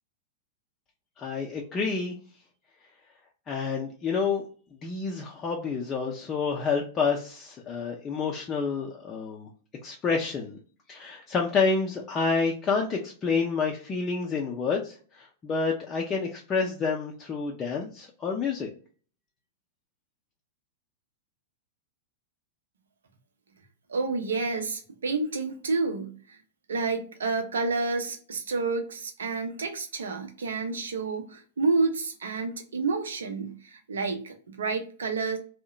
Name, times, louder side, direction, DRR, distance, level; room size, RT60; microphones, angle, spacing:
voice 1, 1.2-2.2 3.5-4.4 4.8-9.5 9.8-10.6 10.9-18.7, left 5 dB, 25° left, 0.5 m, -28 dB
voice 2, 23.9-26.4 26.7-35.4, right 3 dB, 75° right, 0.6 m, -29 dB
2.7 x 2.1 x 2.3 m
figure-of-eight pair, 100°, 0 cm